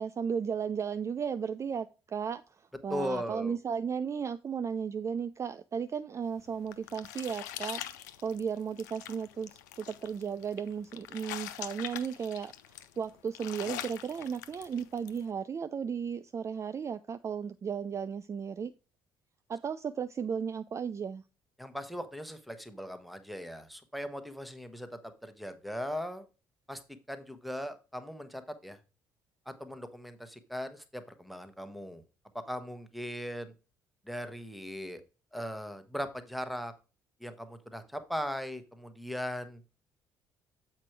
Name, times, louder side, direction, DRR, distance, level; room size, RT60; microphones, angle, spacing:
voice 1, 0.0-2.4 2.8-7.8 8.2-12.5 13.0-18.7 19.5-21.2, right 7 dB, 30° right, 12 dB, 0.4 m, -35 dB
voice 2, 2.9-3.6 21.6-26.2 26.7-26.8 27.1-28.8 29.5-32.0 32.5-33.5 34.1-35.0 35.3-36.7 37.2-39.6, equal, ahead, 11 dB, 1.1 m, -39 dB
sound 1, 6.3-15.2, left 12 dB, 75° left, 0.5 m, -44 dB
7.5 x 4.4 x 4.6 m, 0.32 s
figure-of-eight pair, 50°, 10 cm